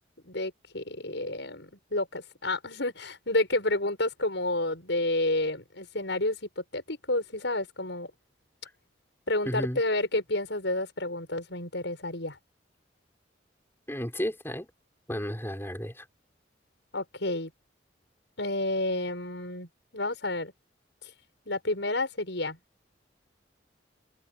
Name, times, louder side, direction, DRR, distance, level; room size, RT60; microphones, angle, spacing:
voice 1, 0.2-8.1 9.3-12.4 16.9-17.5 18.4-20.5 21.5-22.6, left 2 dB, 75° left, 6.4 m, -30 dB
voice 2, 9.4-9.8 13.9-14.7 15.1-16.0, equal, 15° left, 6.2 m, -33 dB
open air
head